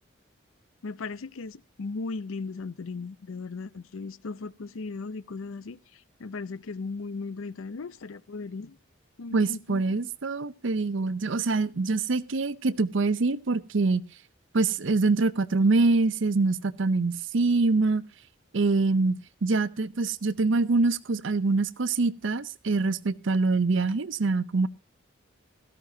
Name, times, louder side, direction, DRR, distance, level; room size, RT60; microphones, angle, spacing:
voice 1, 0.8-8.8 9.2-10.0 11.0-11.1, left 4 dB, 85° left, 0.6 m, -37 dB
voice 2, 9.3-14.0 14.5-18.0 18.5-24.7, right 3 dB, 70° right, 0.6 m, -25 dB
17.0 x 13.5 x 2.7 m
head